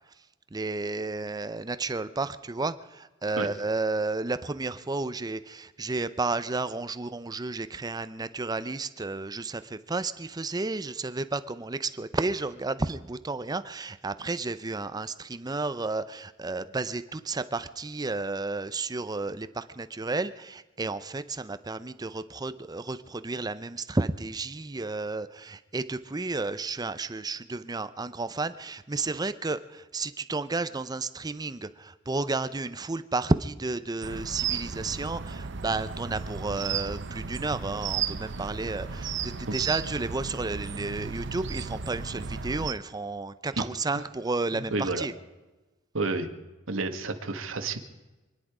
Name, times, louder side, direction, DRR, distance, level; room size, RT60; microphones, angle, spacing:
voice 1, 0.5-45.1, right 3 dB, 20° right, 12 dB, 0.6 m, -32 dB
sound 1, 34.0-42.7, right 6 dB, 65° right, 0.8 m, -34 dB
voice 2, 44.5-45.1 45.9-46.3 46.7-47.8, right 3 dB, 85° right, 6 dB, 1.6 m, -30 dB
27.0 x 10.5 x 4.9 m, 1.1 s
head